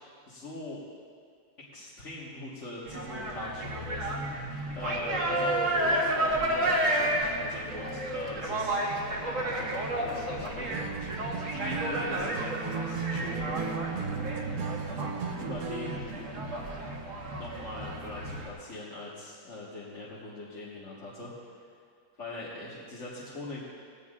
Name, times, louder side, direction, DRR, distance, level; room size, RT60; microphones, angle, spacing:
voice 1, 0.3-0.8 1.7-5.6 5.9-8.9 9.3-11.1 11.5-13.6 15.4-16.3 17.3-21.6 22.2-23.6, left 2 dB, 45° left, -8 dB, 1.9 m, -41 dB
sound 1, 2.9-18.5, right 1 dB, 45° right, 1.9 m, -32 dB
Acoustic guitar, 10.7-16.1, right 5 dB, 60° right, 1.2 m, -35 dB
19.0 x 16.0 x 2.5 m, 2.2 s
omnidirectional pair, 1.9 m